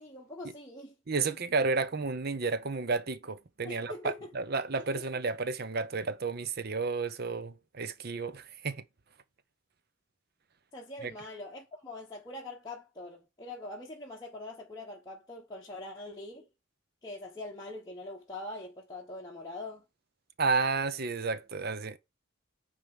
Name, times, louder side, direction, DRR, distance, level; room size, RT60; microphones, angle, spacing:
voice 1, 0.0-0.9 3.6-4.3 4.8-4.9 10.7-16.5 17.0-19.8, left 2 dB, 15° left, 0.9 m, -43 dB
voice 2, 1.1-8.8 11.0-11.1 20.4-22.0, right 4 dB, 45° right, 0.7 m, -32 dB
9.1 x 3.4 x 5.3 m
head